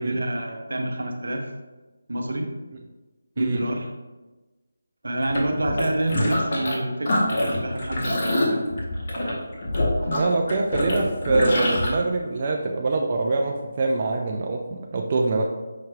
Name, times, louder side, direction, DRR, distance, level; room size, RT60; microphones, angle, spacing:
voice 1, 0.0-1.5 2.1-2.5 3.4-3.9 5.0-8.8 9.2-9.4, right 1 dB, 75° right, 3 dB, 0.7 m, -27 dB
sound 1, 5.2-6.8 7.0-11.9, left 1 dB, 45° left, 0.9 m, -25 dB
voice 2, 10.1-15.4, right 3 dB, 35° right, 1 dB, 0.3 m, -24 dB
5.7 x 3.1 x 2.2 m, 1.2 s
figure-of-eight pair, 160°, 0 cm